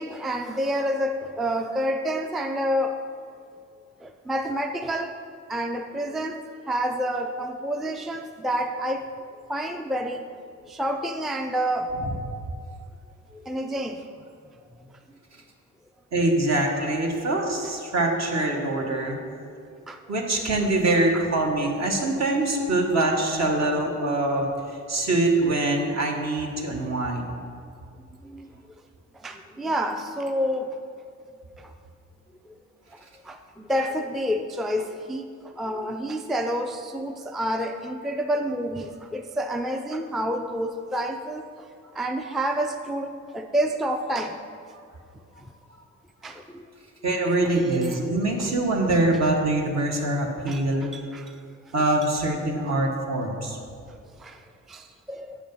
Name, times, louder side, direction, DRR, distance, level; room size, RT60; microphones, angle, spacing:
voice 1, 0.0-3.0 4.0-5.1 5.5-6.4 6.7-9.1 9.5-10.3 10.7-11.9 13.3-14.0 19.9-20.0 21.1-21.2 28.2-28.5 29.2-30.8 31.6-31.7 33.2-41.5 41.9-44.4 46.2-46.6 47.5-48.0 48.4-48.5 50.5-51.3 53.9-54.4 54.7-55.4, equal, ahead, 6 dB, 0.3 m, -29 dB
voice 2, 11.8-12.1 16.1-19.2 20.1-24.5 24.9-27.3 47.0-50.9 51.7-53.6, right 2 dB, 55° right, 1 dB, 1.4 m, -24 dB
8.0 x 5.1 x 5.3 m, 2.3 s
cardioid pair, 75°, 32 cm